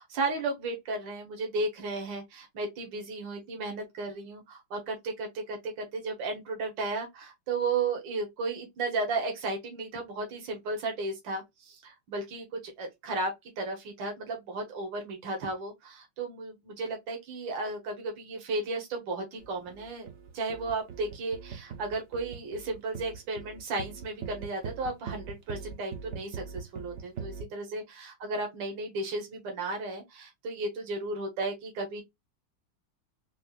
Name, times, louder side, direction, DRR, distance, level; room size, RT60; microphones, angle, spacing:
voice 1, 0.1-20.1 20.3-32.0, right 3 dB, 75° right, 1.9 m, -34 dB
sound 1, 19.4-27.4, right 6 dB, 55° right, 0.8 m, -41 dB
4.3 x 2.5 x 2.4 m
omnidirectional pair, 2.0 m